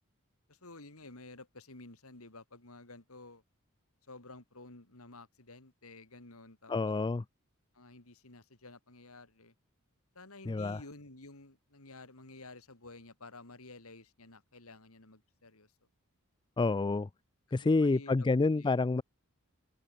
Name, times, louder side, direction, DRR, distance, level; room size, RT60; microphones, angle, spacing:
voice 1, 0.5-3.4 4.1-6.7 7.7-9.5 10.2-15.7 17.5-18.7, left 2 dB, 75° left, 3.5 m, -52 dB
voice 2, 6.7-7.2 10.5-10.8 16.6-17.1 17.5-19.0, left 3 dB, 20° left, 0.4 m, -28 dB
head